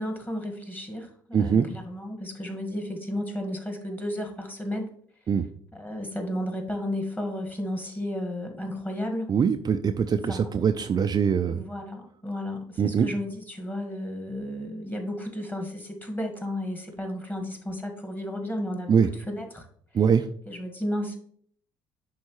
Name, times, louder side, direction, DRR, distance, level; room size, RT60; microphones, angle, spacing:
voice 1, 0.0-4.9 5.7-9.3 10.3-10.6 11.4-19.7 20.5-21.2, left 1 dB, 15° left, 4 dB, 1.7 m, -33 dB
voice 2, 1.3-1.7 5.3-5.4 9.3-11.6 12.8-13.1 18.9-19.1 19.9-20.3, right 7 dB, 35° right, 8 dB, 0.4 m, -22 dB
10.5 x 3.9 x 3.1 m, 0.62 s
hypercardioid pair, 55°, 12 cm